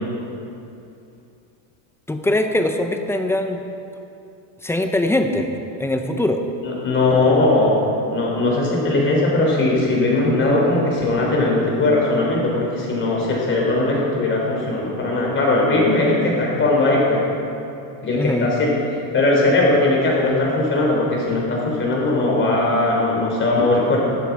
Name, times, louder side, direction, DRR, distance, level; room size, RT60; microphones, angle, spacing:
voice 1, 2.1-3.6 4.6-5.5 5.8-6.4 18.1-18.5, left 1 dB, 5° left, 5 dB, 0.4 m, -21 dB
voice 2, 6.6-7.8 8.1-17.2 18.0-18.8 19.1-24.1, left 2 dB, 25° left, -3 dB, 3.5 m, -19 dB
15.5 x 12.5 x 4.7 m, 2.7 s
cardioid pair, 165°, 48 cm